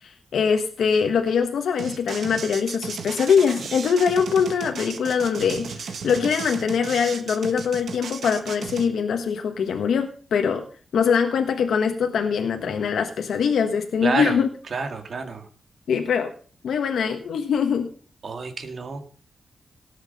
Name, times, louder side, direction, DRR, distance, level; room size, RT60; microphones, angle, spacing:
voice 1, 0.0-10.6 10.9-14.5 15.9-16.3 16.6-17.9, left 6 dB, 85° left, 5 dB, 1.4 m, -23 dB
sound 1, 1.8-8.9, right 5 dB, 70° right, 1.5 m, -35 dB
voice 2, 14.0-14.4 14.7-15.4 18.2-19.1, right 4 dB, 55° right, 6 dB, 2.1 m, -28 dB
18.0 x 7.3 x 5.6 m, 0.41 s
wide cardioid pair, 115°, 0 cm